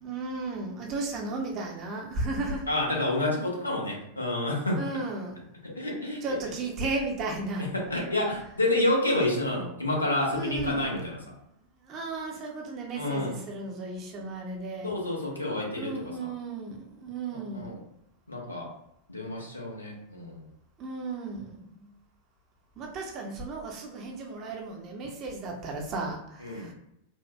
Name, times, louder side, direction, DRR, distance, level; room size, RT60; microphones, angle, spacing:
voice 1, 0.0-2.7 4.8-5.4 6.2-7.7 10.3-10.8 11.9-14.9 15.8-17.7 20.8-21.9 22.8-26.7, right 3 dB, 35° right, 1 dB, 0.7 m, -34 dB
voice 2, 2.7-4.8 5.6-6.4 7.6-11.2 12.9-13.4 14.8-16.3 17.3-17.8 18.3-18.7 19.1-20.5 26.4-26.7, left 1 dB, 85° left, -2 dB, 0.8 m, -29 dB
4.2 x 2.2 x 2.3 m, 0.80 s
figure-of-eight pair, 90°, 0 cm